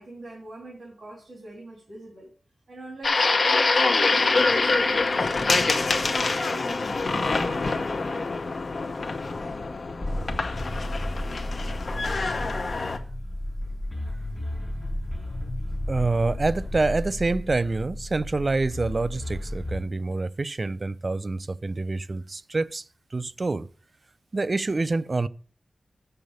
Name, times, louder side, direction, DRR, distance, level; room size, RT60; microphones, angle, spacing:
voice 1, 0.0-2.3 2.7-8.4 9.4-9.6, right 2 dB, 65° right, 3.0 m, -43 dB
sound 1, 3.0-13.0, left 3 dB, 55° left, 0.9 m, -25 dB
sound 2, 10.0-19.8, left 1 dB, 25° left, 4.8 m, -33 dB
voice 2, 15.9-22.8 23.1-23.7 24.3-25.3, right 3 dB, 40° right, 0.4 m, -26 dB
7.3 x 6.8 x 6.3 m
wide cardioid pair, 105°, 0 cm